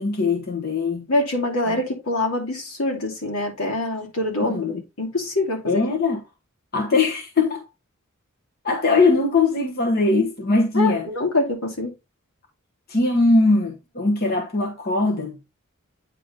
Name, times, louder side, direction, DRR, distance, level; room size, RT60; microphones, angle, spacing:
voice 1, 0.0-1.1 1.7-1.8 4.4-4.8 5.7-6.2 6.7-7.7 8.6-11.1 12.9-15.4, left 3 dB, 45° left, 1.2 m, -21 dB
voice 2, 1.1-5.8 10.7-11.9, left 2 dB, 80° left, 2.6 m, -25 dB
9.2 x 3.6 x 3.6 m
head